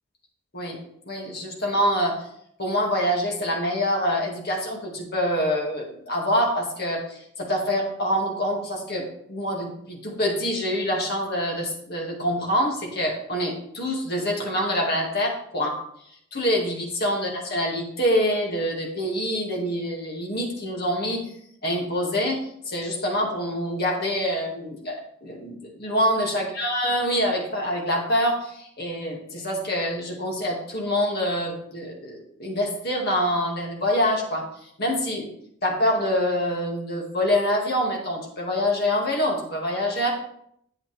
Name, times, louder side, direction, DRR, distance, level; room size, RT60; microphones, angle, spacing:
voice 1, 1.1-2.1 2.6-15.8 16.3-21.2 21.6-35.3 35.6-40.2, equal, 50° left, -1 dB, 2.1 m, -26 dB
8.7 x 8.3 x 3.4 m, 0.72 s
head